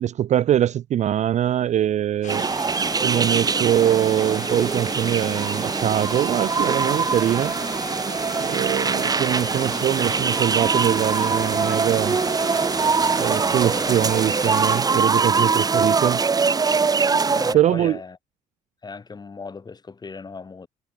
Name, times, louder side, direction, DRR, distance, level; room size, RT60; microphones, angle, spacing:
voice 1, 0.0-2.5 3.0-7.5 8.5-12.2 13.2-16.2 17.5-18.0, right 11 dB, 45° right, 0.4 m, -22 dB
sound 1, 2.2-14.8, left 9 dB, 45° left, 1.1 m, -38 dB
sound 2, 2.3-17.5, right 5 dB, 20° right, 0.8 m, -23 dB
voice 2, 17.3-18.2 18.8-20.7, left 4 dB, 25° left, 2.0 m, -37 dB
cardioid pair, 110°, 17 cm